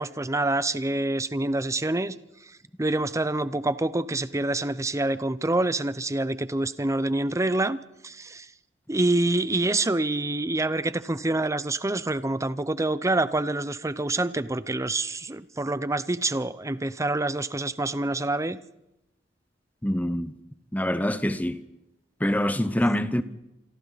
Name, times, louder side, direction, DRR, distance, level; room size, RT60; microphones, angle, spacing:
voice 1, 0.0-2.1 2.8-7.8 8.0-8.5 8.9-18.6, right 2 dB, 15° right, 0.7 m, -26 dB
voice 2, 19.8-20.3 20.7-21.6 22.2-23.2, equal, 10° left, 1.1 m, -25 dB
27.0 x 25.0 x 4.1 m
head